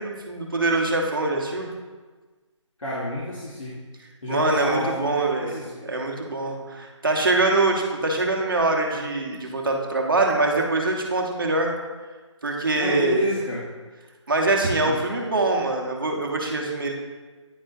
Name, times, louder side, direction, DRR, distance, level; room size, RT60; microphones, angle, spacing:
voice 1, 0.0-1.7 4.3-5.6 5.9-11.7 12.4-13.2 14.3-16.9, right 2 dB, 45° right, 1 dB, 1.0 m, -23 dB
voice 2, 2.8-3.8 4.2-5.9 12.7-13.6 14.9-15.1, left 1 dB, 85° left, -7 dB, 1.5 m, -29 dB
10.0 x 4.1 x 2.6 m, 1.3 s
figure-of-eight pair, 175°, 16 cm